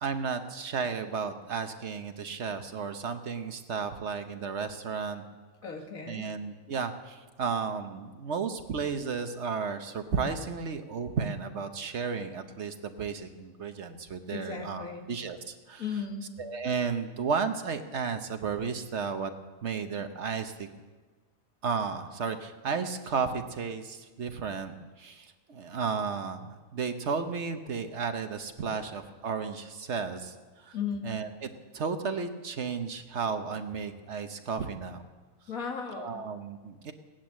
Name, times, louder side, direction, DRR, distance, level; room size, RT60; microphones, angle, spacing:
voice 1, 0.0-5.2 6.1-15.8 16.4-19.3 19.6-20.7 21.6-30.8 31.0-31.5 31.7-35.0 36.0-36.9, right 5 dB, 55° right, 8 dB, 1.2 m, -33 dB
voice 2, 5.6-6.3 14.3-15.1 15.8-16.3 30.7-31.1 35.5-36.3, left 6 dB, 85° left, 3 dB, 2.1 m, -36 dB
17.5 x 10.5 x 7.5 m, 1.3 s
omnidirectional pair, 1.4 m